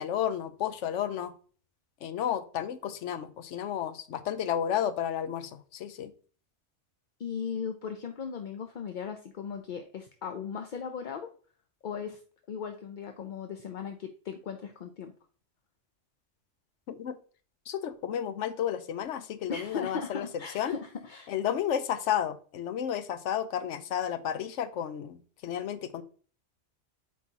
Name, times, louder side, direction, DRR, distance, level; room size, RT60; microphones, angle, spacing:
voice 1, 0.0-1.3 2.0-6.1 16.9-17.2 17.7-20.3 20.5-20.7 21.3-25.2 25.4-26.0, left 9 dB, 80° left, 12 dB, 1.0 m, -32 dB
voice 2, 7.2-11.3 11.8-12.2 12.5-15.1 19.5-21.3, left 6 dB, 50° left, 6 dB, 0.6 m, -37 dB
8.1 x 4.6 x 2.8 m, 0.42 s
omnidirectional pair, 1.2 m